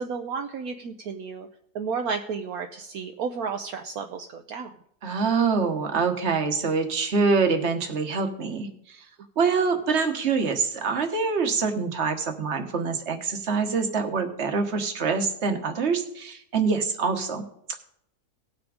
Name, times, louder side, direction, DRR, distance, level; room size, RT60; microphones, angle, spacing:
voice 1, 0.0-1.5 1.7-4.7, right 5 dB, 70° right, 5 dB, 1.2 m, -32 dB
voice 2, 5.0-9.0 9.4-17.4, right 5 dB, 45° right, 6 dB, 1.5 m, -25 dB
18.0 x 6.1 x 4.9 m, 0.70 s
omnidirectional pair, 1.7 m